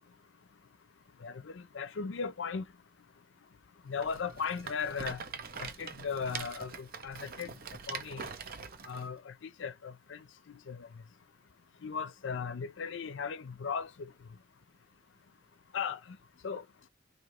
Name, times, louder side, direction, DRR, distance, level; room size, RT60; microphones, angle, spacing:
voice 1, 1.2-2.7 3.9-5.2 5.6-7.5 7.9-8.3 8.9-10.2 10.7-10.9 11.8-14.1 15.7-16.2 16.4-16.6, left 6 dB, 80° left, 0.5 m, -37 dB
Rattle, 4.0-9.1, right 6 dB, 50° right, 0.7 m, -43 dB
3.0 x 2.7 x 4.3 m
head